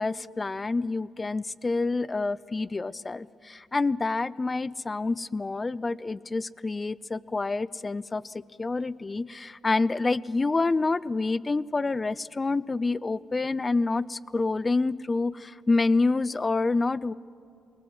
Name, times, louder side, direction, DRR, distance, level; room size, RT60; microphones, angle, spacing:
voice 1, 0.0-8.3 8.6-17.1, left 3 dB, 25° left, 20 dB, 0.4 m, -27 dB
20.5 x 19.0 x 7.7 m, 2.6 s
cardioid pair, 90°, 0 cm